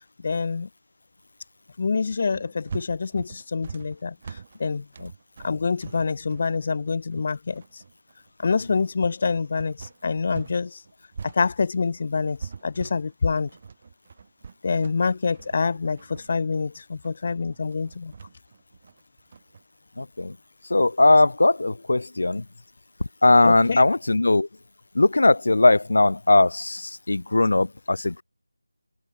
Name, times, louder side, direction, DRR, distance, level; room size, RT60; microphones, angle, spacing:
voice 1, 0.2-0.7 1.8-4.9 5.4-7.6 8.4-10.8 11.2-12.4 12.6-13.5 14.6-18.1 23.4-23.8, left 4 dB, 25° left, 0.6 m, -26 dB
sound 1, 2.3-10.6 10.9-19.6, right 5 dB, 20° right, 2.1 m, -42 dB
voice 2, 20.0-20.4 20.6-22.5 23.2-24.5 24.9-28.2, left 2 dB, 50° left, 1.3 m, -19 dB
figure-of-eight pair, 175°, 0 cm